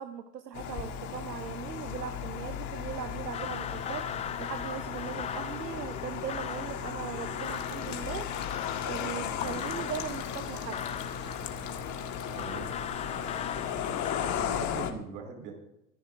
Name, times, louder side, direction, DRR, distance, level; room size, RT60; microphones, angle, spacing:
voice 1, 0.0-4.1 4.4-8.3 8.9-10.8, right 8 dB, 85° right, 9 dB, 0.9 m, -39 dB
sound 1, 0.5-14.9, left 8 dB, 35° left, 1.6 m, -36 dB
sound 2, 3.3-14.5, left 9 dB, 15° left, 0.5 m, -40 dB
sound 3, 7.4-12.5, left 8 dB, 75° left, 2.6 m, -49 dB
voice 2, 12.3-12.7 14.1-15.5, right 5 dB, 55° right, 3 dB, 4.8 m, -41 dB
24.5 x 11.0 x 2.6 m, 0.86 s
hypercardioid pair, 95°, 48 cm